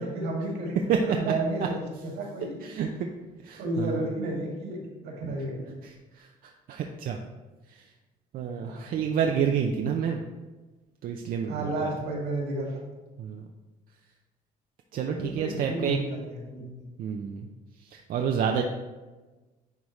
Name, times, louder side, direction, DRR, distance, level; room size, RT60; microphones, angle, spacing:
voice 1, 0.0-0.7 1.0-2.6 3.6-5.7 8.6-8.9 11.5-12.8 14.9-16.6, right 2 dB, 80° right, -1 dB, 2.1 m, -32 dB
voice 2, 2.6-3.1 3.4-4.0 5.8-7.2 7.7-7.9 8.3-10.2 11.0-11.9 13.2-13.5 14.9-16.0 17.0-17.5 17.8-18.7, right 7 dB, 60° right, 3 dB, 0.5 m, -29 dB
10.5 x 3.5 x 3.1 m, 1.2 s
cardioid pair, 110°, 17 cm